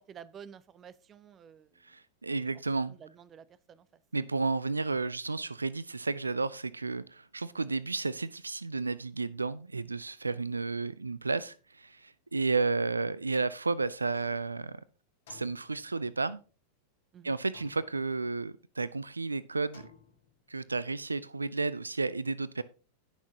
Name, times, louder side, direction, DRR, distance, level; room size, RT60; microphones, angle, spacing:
voice 1, 0.0-2.0 2.5-2.6 2.9-4.0 10.3-10.4 17.1-17.4, right 8 dB, 25° right, 0.6 m, -52 dB
voice 2, 1.8-2.9 4.1-14.8 15.3-16.4 17.2-19.8 20.5-22.6, right 3 dB, 80° right, 0.3 m, -32 dB
sound 1, 15.3-16.5 17.5-18.5 19.7-20.7, left 6 dB, 60° left, 3.3 m, -58 dB
17.0 x 6.1 x 2.8 m
figure-of-eight pair, 90°, 0 cm